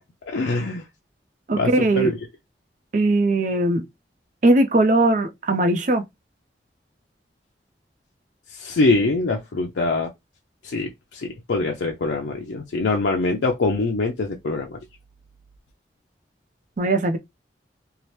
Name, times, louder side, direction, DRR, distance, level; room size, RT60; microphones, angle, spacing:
voice 1, 0.3-0.8 1.5-2.1 8.5-10.1 10.6-14.8, left 3 dB, 85° left, 0.5 m, -24 dB
voice 2, 1.5-2.1 2.9-3.8 4.4-6.0 16.8-17.2, right 2 dB, 45° right, 0.4 m, -19 dB
2.8 x 2.1 x 3.1 m
head